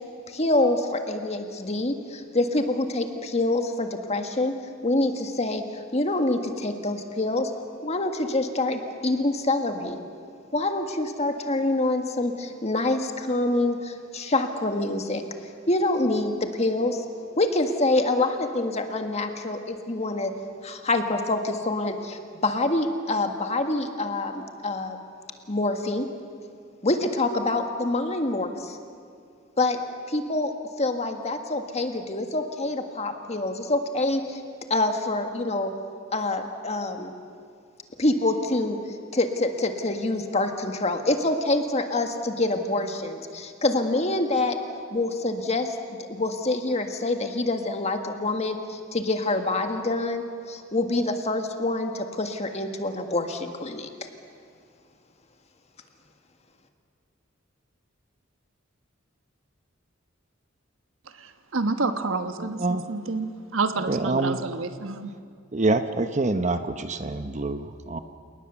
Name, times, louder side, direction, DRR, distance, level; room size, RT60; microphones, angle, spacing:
voice 1, 0.3-4.5 4.8-5.6 5.9-7.5 7.8-10.0 10.5-15.2 15.7-17.0 17.4-20.3 20.6-25.0 25.5-26.1 26.8-28.8 29.6-29.8 30.1-30.5 30.8-34.4 34.7-35.7 36.1-37.1 38.0-38.8 39.1-44.6 44.9-45.8 46.1-53.9, left 2 dB, 35° left, 5 dB, 1.7 m, -26 dB
voice 2, 61.0-65.1, right 3 dB, 75° right, 8 dB, 1.3 m, -29 dB
voice 3, 62.4-62.8 63.9-64.4 65.5-68.0, right 2 dB, 35° right, 9 dB, 0.9 m, -26 dB
29.5 x 19.0 x 7.1 m, 2.3 s
head